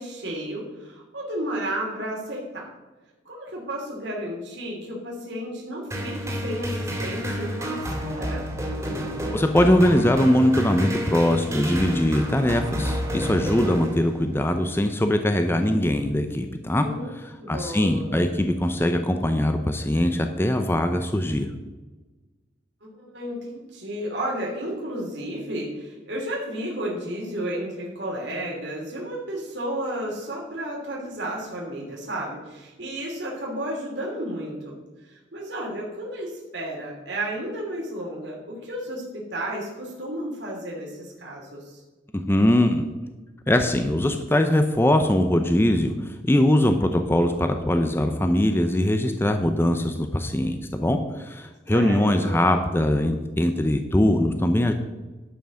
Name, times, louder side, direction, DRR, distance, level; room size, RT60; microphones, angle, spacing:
voice 1, 0.0-2.7 3.2-8.4 16.8-18.2 23.0-34.8 35.0-41.8 51.7-52.4, right 1 dB, 65° right, -3 dB, 3.0 m, -32 dB
sound 1, 5.9-14.4, equal, 15° right, 2.3 m, -30 dB
voice 2, 9.3-16.8 17.2-21.5 42.1-42.8 43.5-54.7, left 1 dB, 10° left, 6 dB, 0.6 m, -21 dB
11.5 x 5.9 x 6.4 m, 1.2 s
head